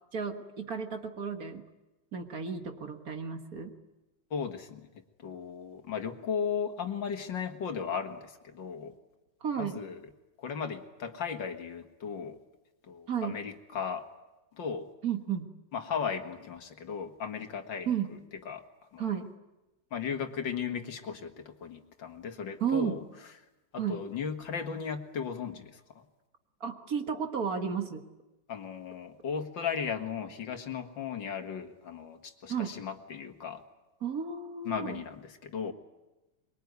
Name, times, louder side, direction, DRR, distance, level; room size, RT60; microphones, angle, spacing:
voice 1, 0.1-1.6 2.1-3.7 9.4-9.8 13.1-13.4 15.0-15.5 17.9-18.1 19.0-19.3 22.6-23.0 23.8-24.0 26.6-28.0 32.5-32.7 34.0-35.0, right 7 dB, 50° right, 6 dB, 2.0 m, -33 dB
voice 2, 4.3-4.8 5.2-8.9 9.6-10.0 10.4-12.4 12.9-14.1 14.6-14.9 15.7-18.2 18.5-18.6 18.9-19.0 19.9-23.0 23.7-26.0 28.5-33.6 34.7-35.7, left 6 dB, 70° left, 6 dB, 2.4 m, -36 dB
24.0 x 22.5 x 9.5 m, 1.0 s
omnidirectional pair, 2.1 m